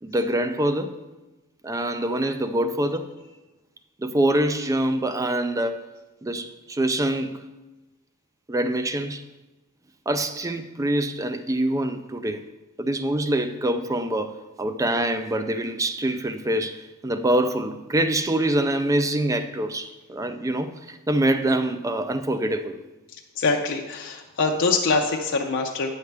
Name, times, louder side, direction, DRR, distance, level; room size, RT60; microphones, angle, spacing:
voice 1, 0.0-1.0 1.6-3.1 4.0-5.9 6.2-7.5 8.5-9.2 10.1-12.4 12.8-22.8, right 1 dB, 15° right, 0.4 m, -25 dB
voice 2, 23.1-26.0, left 3 dB, 60° left, 0.6 m, -24 dB
9.1 x 6.5 x 3.3 m
head